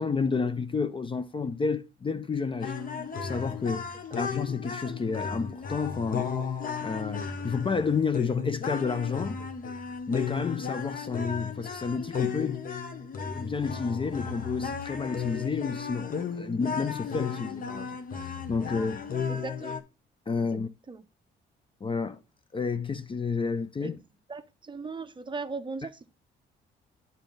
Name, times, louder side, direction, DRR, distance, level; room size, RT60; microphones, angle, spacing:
voice 1, 0.0-2.7 3.2-3.9 4.2-6.3 6.8-9.4 10.1-12.6 13.3-19.0 20.3-20.7 21.8-22.2 22.5-24.0, left 5 dB, 25° left, 0.4 m, -30 dB
sound 1, 2.6-19.8, left 6 dB, 45° left, 1.0 m, -34 dB
voice 2, 19.3-19.8 20.4-20.6 20.9-21.1 23.8-24.0 24.3-26.1, right 4 dB, 25° right, 0.7 m, -38 dB
8.8 x 4.0 x 4.0 m
cardioid pair, 90°, 20 cm